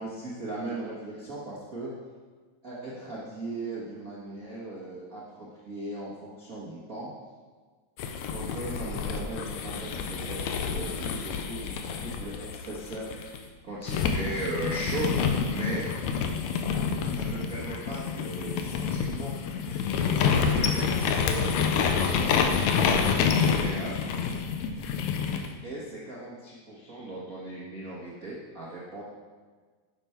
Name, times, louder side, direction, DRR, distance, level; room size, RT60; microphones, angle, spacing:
voice 1, 0.0-2.0 2.6-7.1 8.3-13.1 13.6-15.9 17.1-24.1 25.6-29.0, right 2 dB, 60° right, -7 dB, 0.9 m, -38 dB
sound 1, 8.0-13.4 13.9-25.5, left 6 dB, 75° left, 1.8 m, -28 dB
10.0 x 7.1 x 4.4 m, 1.5 s
omnidirectional pair, 3.8 m